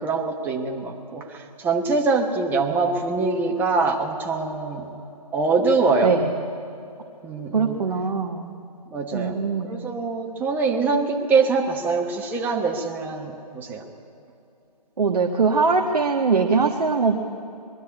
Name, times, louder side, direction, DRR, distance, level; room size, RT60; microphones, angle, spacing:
voice 1, 0.0-4.9 5.3-6.2 7.2-7.8 8.9-9.4 9.6-13.9, right 4 dB, 10° right, 1 dB, 1.1 m, -24 dB
voice 2, 7.5-8.5 9.1-9.7 15.0-17.2, right 4 dB, 65° right, 3 dB, 1.4 m, -21 dB
22.0 x 12.5 x 10.0 m, 2.8 s
figure-of-eight pair, 145°, 21 cm